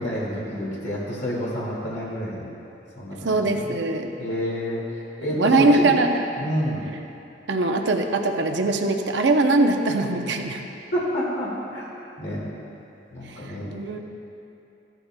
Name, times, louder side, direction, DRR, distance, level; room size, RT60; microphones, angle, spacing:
voice 1, 0.0-2.5 3.0-3.7 4.2-4.8 5.2-5.9 6.4-6.9 10.9-11.8 12.2-12.4 13.1-13.7, equal, 75° left, -7 dB, 2.0 m, -28 dB
voice 2, 3.2-4.1 5.3-6.2 7.5-10.6 13.3-14.0, right 2 dB, 75° right, 4 dB, 0.7 m, -21 dB
15.5 x 12.0 x 2.2 m, 2.8 s
head